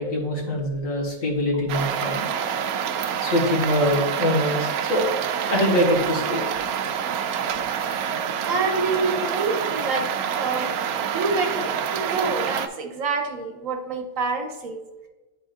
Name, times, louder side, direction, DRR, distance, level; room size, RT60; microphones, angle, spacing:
voice 1, 0.0-2.3 3.2-5.1 5.5-6.4, equal, 60° left, -2 dB, 2.0 m, -23 dB
sound 1, 1.7-12.7, right 8 dB, 80° right, 1.1 m, -27 dB
voice 2, 8.4-14.8, right 3 dB, 65° right, 4 dB, 1.3 m, -27 dB
10.5 x 4.2 x 2.5 m, 1.1 s
omnidirectional pair, 1.6 m